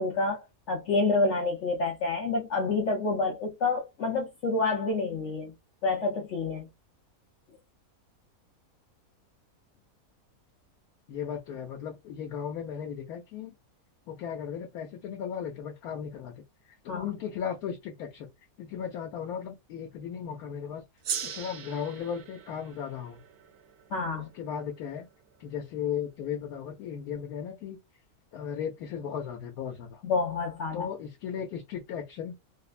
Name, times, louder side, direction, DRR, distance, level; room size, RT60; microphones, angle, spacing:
voice 1, 0.0-5.5 5.8-6.7 16.9-17.1 23.9-24.3 30.0-30.9, left 3 dB, 60° left, 0.8 m, -28 dB
voice 2, 11.1-13.5 14.1-16.4 16.8-18.3 18.6-20.8 21.2-23.2 24.1-25.1 25.4-27.8 28.3-30.0 30.7-32.3, left 8 dB, 80° left, 1.1 m, -36 dB
Gong, 21.0-25.8, right 8 dB, 85° right, 1.1 m, -40 dB
3.1 x 2.0 x 2.4 m
omnidirectional pair, 1.6 m